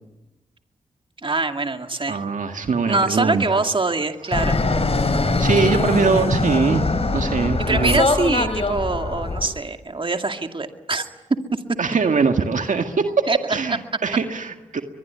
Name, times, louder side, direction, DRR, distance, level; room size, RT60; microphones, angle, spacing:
voice 1, 1.2-2.2 2.9-4.6 7.6-11.1 13.3-13.4 13.7-13.8, right 3 dB, 40° right, 6 dB, 2.2 m, -24 dB
voice 2, 2.1-3.6 5.2-6.9 7.1-8.1 11.8-14.8, right 4 dB, 70° right, 6 dB, 1.9 m, -22 dB
Fixed-wing aircraft airplane, 4.3-9.5, left 3 dB, 45° left, 3.6 m, -22 dB
22.5 x 22.5 x 9.6 m, 0.99 s
cardioid pair, 50°, 14 cm